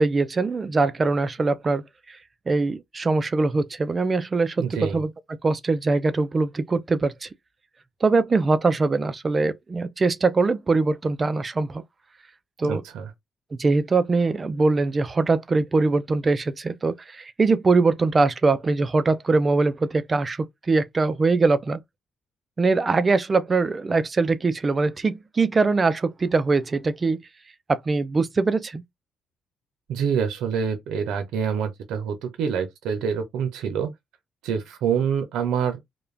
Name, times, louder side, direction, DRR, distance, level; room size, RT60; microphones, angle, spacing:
voice 1, 0.0-2.2 2.5-5.1 5.4-7.3 8.0-11.8 12.6-12.8 13.6-21.8 22.6-27.2 27.7-28.8, right 3 dB, 30° right, 0.4 m, -22 dB
voice 2, 4.6-5.0 12.6-13.1 29.9-33.9 34.4-35.9, right 7 dB, 90° right, 0.6 m, -26 dB
2.4 x 2.2 x 3.2 m
cardioid pair, 90°, 0 cm